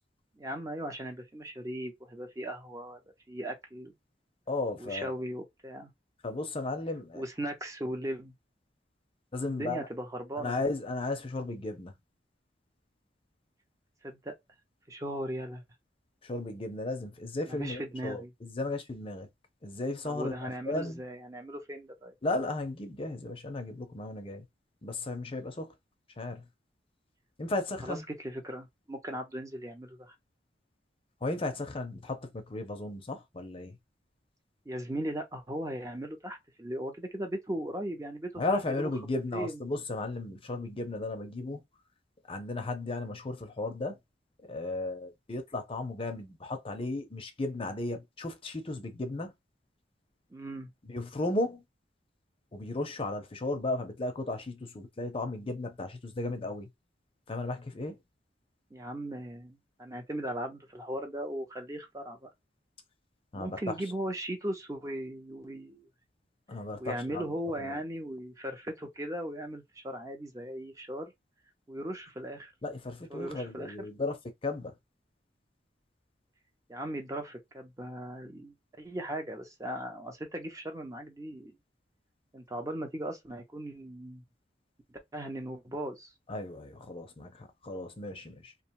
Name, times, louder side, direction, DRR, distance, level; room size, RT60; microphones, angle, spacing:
voice 1, 0.4-3.0 3.3-3.9 4.8-5.9 7.1-8.3 9.4-10.6 14.0-14.3 14.9-15.6 17.5-18.3 20.0-22.1 27.8-30.1 34.7-38.9 39.3-39.6 50.3-50.7 58.7-62.3 63.3-65.9 66.8-71.1 71.7-72.5 73.1-73.9 76.7-81.5 82.3-84.2 84.9-86.1, right 1 dB, 20° right, 0.5 m, -38 dB
voice 2, 4.5-5.1 6.2-7.2 9.3-9.9 10.4-11.9 16.2-19.3 19.6-21.0 22.2-24.4 24.8-25.7 26.2-26.4 27.4-28.0 31.2-33.8 38.4-41.6 42.3-44.0 44.5-49.3 50.9-51.6 52.5-56.7 57.3-58.0 63.3-63.6 66.5-67.3 67.6-67.8 72.6-74.2 74.4-74.7 86.3-88.5, left 2 dB, 30° left, 0.6 m, -35 dB
2.7 x 2.2 x 2.8 m
head